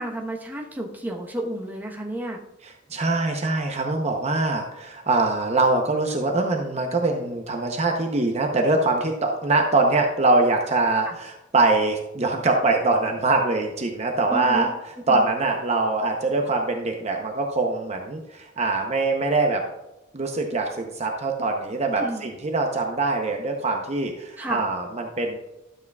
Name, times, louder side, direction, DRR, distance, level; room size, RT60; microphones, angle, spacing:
voice 1, 0.0-2.4 11.0-11.1 14.3-14.7 15.1-15.3 21.9-22.2 24.4-24.6, right 1 dB, 10° right, -1 dB, 1.0 m, -31 dB
voice 2, 2.9-14.7 15.1-19.6 20.1-25.4, right 3 dB, 35° right, 3 dB, 0.7 m, -23 dB
12.0 x 7.7 x 2.3 m, 0.92 s
head